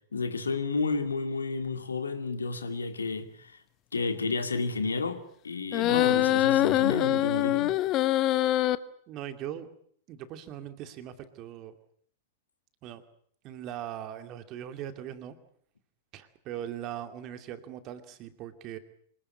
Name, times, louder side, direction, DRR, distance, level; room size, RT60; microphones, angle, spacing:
voice 1, 0.1-3.6 3.9-7.7, left 4 dB, 75° left, 2.5 m, -31 dB
sound 1, 5.7-8.7, left 14 dB, 35° left, 1.0 m, -24 dB
voice 2, 9.1-9.7 10.1-11.8 12.8-13.0 13.4-15.4 16.1-18.8, right 11 dB, 35° right, 2.4 m, -40 dB
26.0 x 19.0 x 8.5 m
figure-of-eight pair, 95°, 0 cm